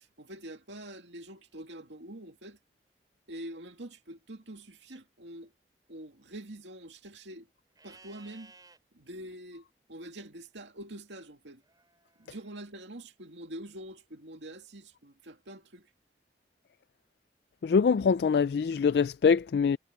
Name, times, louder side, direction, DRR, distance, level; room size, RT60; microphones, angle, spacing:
voice 1, 0.0-2.6 3.3-5.5 5.9-7.5 7.8-8.5 8.9-11.6 12.2-15.9, right 1 dB, 90° right, 2.5 m, -45 dB
Livestock farm animals working animals, 7.7-8.8 11.6-12.6, right 3 dB, 20° right, 6.8 m, -57 dB
voice 2, 17.6-19.8, left 6 dB, 65° left, 0.3 m, -24 dB
head